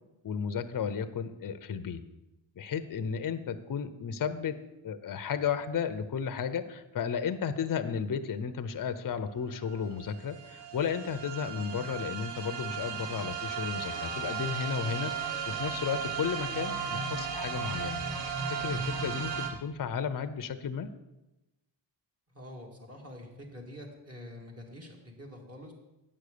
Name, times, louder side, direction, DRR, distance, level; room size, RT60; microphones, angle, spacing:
voice 1, 0.2-2.0 2.6-4.6 4.8-18.0 18.5-20.9, left 7 dB, 45° left, 10 dB, 0.7 m, -33 dB
sound 1, 9.3-9.4 9.5-19.5, right 6 dB, 70° right, 1.5 m, -35 dB
voice 2, 22.3-25.7, left 1 dB, 30° right, 0 dB, 2.4 m, -46 dB
9.2 x 6.4 x 6.8 m, 0.98 s
cardioid pair, 95°, 48 cm